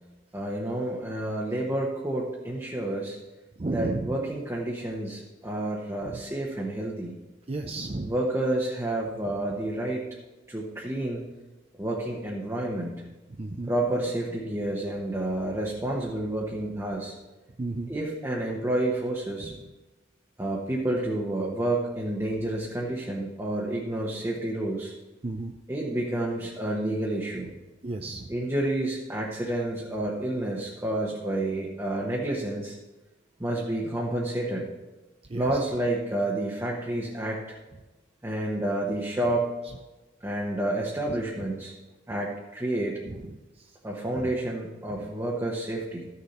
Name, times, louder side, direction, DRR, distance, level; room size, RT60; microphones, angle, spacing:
voice 1, 0.3-3.2 3.7-7.1 8.0-10.0 10.5-11.2 11.8-12.9 13.7-17.1 17.9-19.5 20.4-24.9 25.7-27.5 28.3-32.8 33.4-34.7 35.3-37.6 38.2-39.5 40.2-41.7 42.1-43.0 43.8-46.1, right 1 dB, 15° right, -3 dB, 1.0 m, -29 dB
voice 2, 3.6-4.2 6.0-6.2 7.5-8.1 13.3-13.7 17.6-17.9 19.4-19.5 25.2-25.6 27.8-28.3 35.3-35.6 43.0-43.7 44.1-44.3 44.9-45.0, right 2 dB, 30° right, 3 dB, 0.5 m, -33 dB
13.0 x 6.6 x 4.3 m, 1.1 s
head